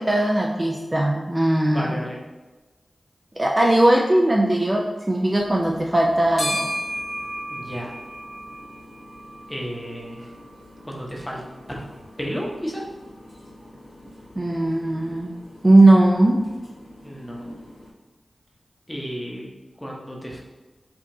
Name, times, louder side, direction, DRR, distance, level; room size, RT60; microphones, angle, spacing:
voice 1, 0.0-1.9 3.4-6.7 14.4-15.3 15.6-16.4, right 1 dB, 25° right, -1 dB, 0.4 m, -18 dB
voice 2, 1.7-2.2 7.5-8.0 9.5-10.3 10.9-11.4 11.7-11.9 12.2-12.8 17.0-17.5 18.9-19.5 19.8-20.4, equal, 15° left, -3 dB, 0.8 m, -32 dB
sound 1, 5.4-17.9, equal, 70° left, 1.2 m, -37 dB
4.6 x 2.4 x 2.6 m, 1.2 s
wide cardioid pair, 60°, 0 cm